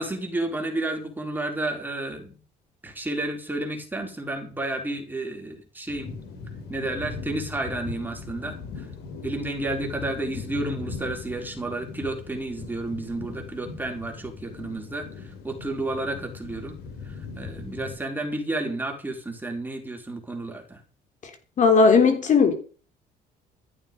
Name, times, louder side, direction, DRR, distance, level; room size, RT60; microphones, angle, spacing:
voice 1, 0.0-2.3 2.8-6.1 6.7-8.9 9.2-15.1 15.4-16.8 17.1-20.8, right 2 dB, 10° right, 4.4 m, -31 dB
sound 1, 5.9-18.0, left 4 dB, 75° left, 5.4 m, -39 dB
voice 2, 21.6-22.5, left 5 dB, 45° left, 3.5 m, -17 dB
14.0 x 11.5 x 5.4 m
cardioid pair, 110°, 17 cm